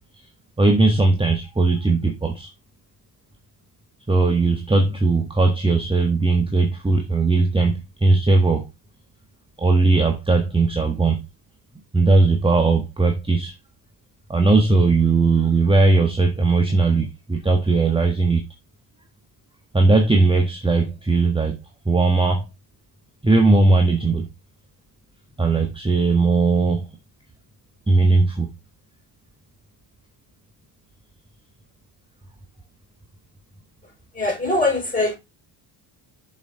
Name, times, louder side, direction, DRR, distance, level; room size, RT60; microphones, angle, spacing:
voice 1, 0.6-2.5 4.1-8.7 9.6-11.2 11.9-13.5 14.3-18.5 19.7-21.6 21.8-22.5 23.2-24.3 25.4-26.9 27.9-28.5, right 3 dB, 10° right, 1.3 m, -18 dB
voice 2, 33.8-35.2, left 2 dB, 20° left, 5.5 m, -23 dB
7.2 x 5.8 x 3.9 m
cardioid pair, 105°, 47 cm